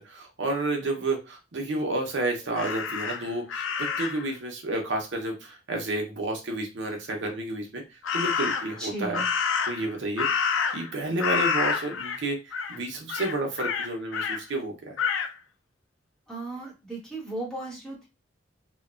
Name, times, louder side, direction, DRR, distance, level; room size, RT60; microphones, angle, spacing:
voice 1, 0.0-7.8 8.1-9.2 9.7-10.3 10.7-14.9, right 2 dB, 70° right, 2 dB, 0.7 m, -30 dB
Crow, 2.5-4.3 8.0-8.8 9.1-10.9 11.2-12.2 12.5-12.8 13.1-14.4 15.0-15.3, left 6 dB, 85° left, 0.4 m, -28 dB
voice 2, 8.8-9.3 16.3-18.1, right 2 dB, 5° left, -5 dB, 1.0 m, -36 dB
2.9 x 2.1 x 2.4 m, 0.27 s
head